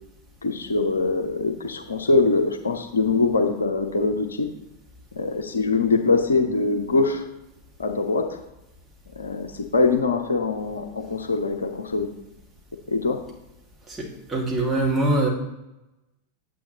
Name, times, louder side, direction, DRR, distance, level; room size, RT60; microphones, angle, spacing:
voice 1, 0.4-4.5 5.2-7.3 7.8-8.4 9.1-12.1 12.9-13.2, left 3 dB, 70° left, 6 dB, 0.7 m, -23 dB
voice 2, 13.9-15.3, right 2 dB, 10° right, -3 dB, 2.0 m, -23 dB
8.6 x 7.9 x 3.0 m, 0.95 s
figure-of-eight pair, 90°, 0 cm